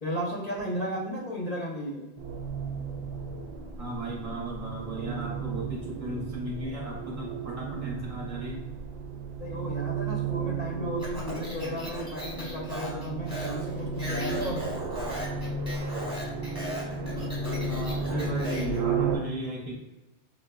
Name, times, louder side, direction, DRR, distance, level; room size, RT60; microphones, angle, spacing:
voice 1, 0.0-2.0 9.4-14.8 18.1-18.6, equal, 45° left, -4 dB, 0.6 m, -34 dB
sound 1, 2.2-19.2, right 4 dB, 75° right, 0.9 m, -34 dB
voice 2, 3.8-8.7 17.7-19.7, right 1 dB, 35° right, -3 dB, 0.7 m, -35 dB
Speech, 11.0-18.8, left 1 dB, 5° right, 1.0 m, -38 dB
4.9 x 2.0 x 2.2 m, 1.0 s
omnidirectional pair, 1.2 m